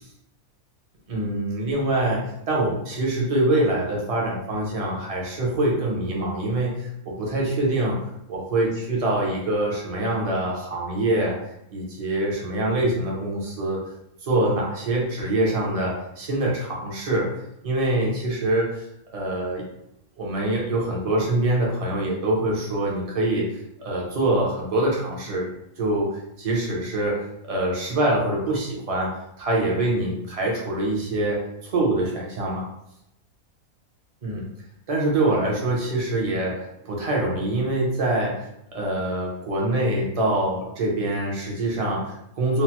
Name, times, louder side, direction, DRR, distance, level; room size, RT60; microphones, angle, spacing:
voice 1, 1.1-8.0 8.3-11.3 11.7-13.8 14.2-17.3 17.6-18.8 19.1-19.6 20.2-23.5 23.8-25.5 25.8-32.7 34.2-34.4 34.9-38.3 38.7-42.6, right 1 dB, 40° right, -3 dB, 0.5 m, -24 dB
3.1 x 2.1 x 2.9 m, 0.80 s
omnidirectional pair, 1.6 m